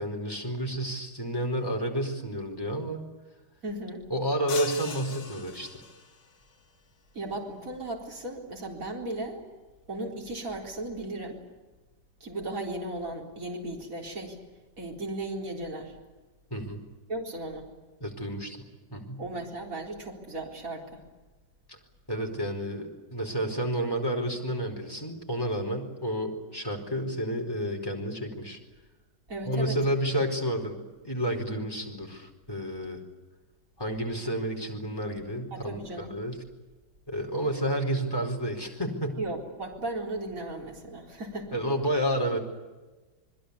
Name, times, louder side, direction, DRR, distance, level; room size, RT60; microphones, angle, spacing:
voice 1, 0.0-3.0 4.1-5.8 16.5-16.8 18.0-18.6 18.9-19.2 21.7-21.8 22.1-28.6 29.4-33.0 33.8-36.4 37.1-39.2 41.5-42.4, equal, 10° left, 2 dB, 4.7 m, -30 dB
voice 2, 3.6-4.0 7.1-9.4 9.9-11.4 12.2-14.4 14.8-16.0 17.1-17.7 19.2-21.0 29.3-29.8 35.5-36.1 39.2-41.6, right 2 dB, 50° right, 0 dB, 4.5 m, -36 dB
sound 1, 4.5-6.3, left 7 dB, 80° left, 2.2 m, -39 dB
28.5 x 21.5 x 8.5 m, 1.2 s
omnidirectional pair, 1.9 m